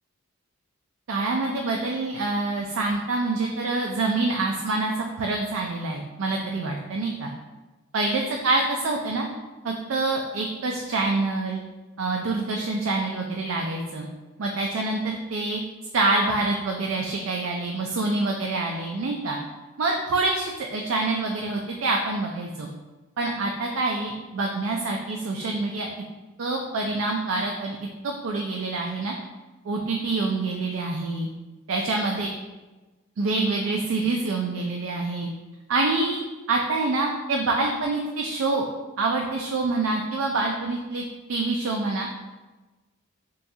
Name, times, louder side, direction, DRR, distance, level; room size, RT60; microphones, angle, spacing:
voice 1, 1.1-7.3 7.9-9.3 9.6-11.6 12.0-14.1 14.4-15.6 15.9-19.4 19.8-22.7 23.2-25.9 26.4-27.8 28.0-29.1 29.7-31.3 31.7-32.3 33.2-35.3 35.7-36.2 36.5-38.7 39.0-41.0 41.3-42.1, right 3 dB, 70° right, 1 dB, 0.4 m, -26 dB
5.5 x 2.3 x 2.7 m, 1.2 s
head